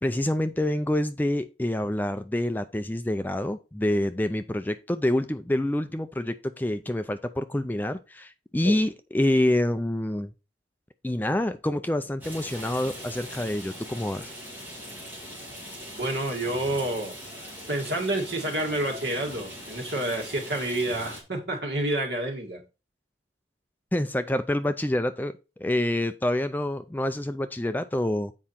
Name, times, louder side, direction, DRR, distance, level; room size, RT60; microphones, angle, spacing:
voice 1, 0.0-10.3 11.0-14.3 23.9-28.3, left 1 dB, 10° left, 0.4 m, -27 dB
Rain, 12.2-21.2, equal, 10° right, 2.8 m, -41 dB
voice 2, 16.0-22.6, right 1 dB, 70° right, 2.0 m, -29 dB
7.6 x 4.9 x 4.3 m
head